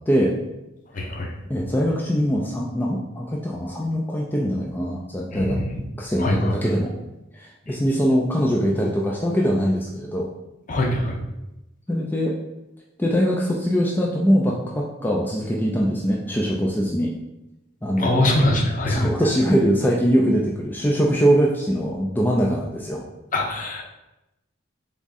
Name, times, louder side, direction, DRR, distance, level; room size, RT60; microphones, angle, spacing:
voice 1, 0.1-0.4 1.5-5.6 6.0-6.9 7.3-10.3 11.9-12.4 13.0-17.1 17.8-18.2 18.8-23.0, equal, 10° left, -3 dB, 0.4 m, -22 dB
voice 2, 0.9-1.3 5.3-5.8 6.2-6.5 10.7-11.2 18.0-19.1 23.3-23.8, left 1 dB, 40° left, 2 dB, 0.7 m, -23 dB
3.6 x 3.6 x 4.0 m, 0.95 s
head